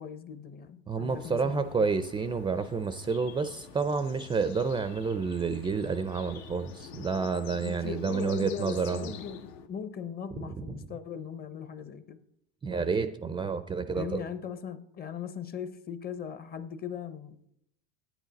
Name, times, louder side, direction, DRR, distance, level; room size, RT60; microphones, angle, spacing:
voice 1, 0.0-1.9 7.6-9.4 9.7-12.2 13.9-17.5, left 8 dB, 30° left, 0.7 m, -39 dB
voice 2, 0.9-9.1 10.3-10.8 12.6-14.2, right 5 dB, 15° right, 0.4 m, -30 dB
sound 1, 1.1-9.7, left 7 dB, 85° left, 1.1 m, -47 dB
9.7 x 9.1 x 4.0 m
supercardioid pair, 115°, 31 cm